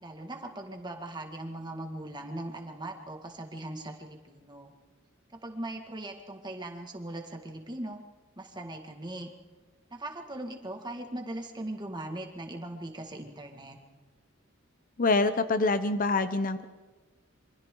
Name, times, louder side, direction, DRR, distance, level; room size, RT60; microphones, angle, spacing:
voice 1, 0.0-4.7 5.4-8.0 8.4-9.3 9.9-13.8, right 1 dB, 20° right, 3 dB, 2.1 m, -39 dB
voice 2, 15.0-16.6, left 3 dB, 40° left, 11 dB, 0.8 m, -25 dB
27.5 x 24.5 x 3.9 m, 1.3 s
head